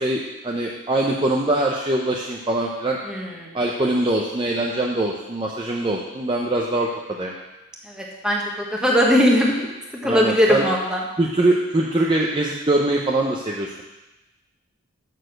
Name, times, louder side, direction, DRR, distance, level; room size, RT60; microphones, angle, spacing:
voice 1, 0.0-3.0 3.5-7.3 10.0-10.6 11.2-13.8, right 2 dB, 20° right, -2 dB, 0.6 m, -23 dB
voice 2, 3.0-3.5 7.8-8.4 8.7-9.7 10.0-11.0, equal, 5° right, -3 dB, 1.3 m, -19 dB
6.7 x 6.4 x 6.4 m, 1.1 s
head